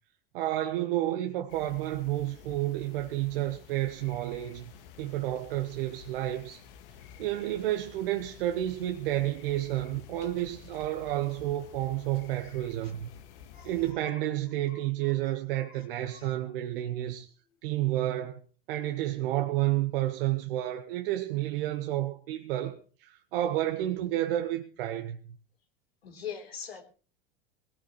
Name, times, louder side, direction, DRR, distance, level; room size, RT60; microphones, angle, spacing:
voice 1, 0.3-4.7 5.0-6.6 7.2-13.1 13.6-17.3 17.6-18.4 18.7-25.3, right 14 dB, 65° right, 1.3 m, -30 dB
sound 1, 1.5-13.9, left 8 dB, 65° left, 1.9 m, -51 dB
voice 2, 26.0-26.8, left 7 dB, 85° left, 3.7 m, -41 dB
19.5 x 18.0 x 3.2 m
hypercardioid pair, 90°, 30 cm